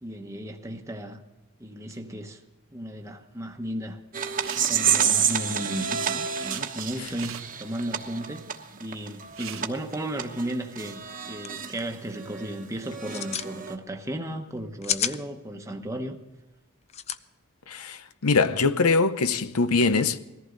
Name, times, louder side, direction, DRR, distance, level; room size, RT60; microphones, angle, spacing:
voice 1, 0.0-1.2 1.6-2.4 2.7-4.0 4.5-11.0 11.3-16.2, right 1 dB, 15° right, 1.1 m, -35 dB
sound 1, 4.1-11.7 12.2-13.8, right 8 dB, 40° right, 1.1 m, -29 dB
sound 2, 4.3-4.6 5.8-6.6 7.0-7.4 8.9-9.0 9.2-9.7, right 10 dB, 60° right, 1.0 m, -41 dB
sound 3, 11.0-11.1 11.3-11.5 11.8-12.1 12.9-13.5 14.6-15.2 16.9-17.2, left 9 dB, 30° left, 0.5 m, -29 dB
voice 2, 17.7-20.2, left 4 dB, 75° left, 0.8 m, -23 dB
21.0 x 14.5 x 3.9 m
head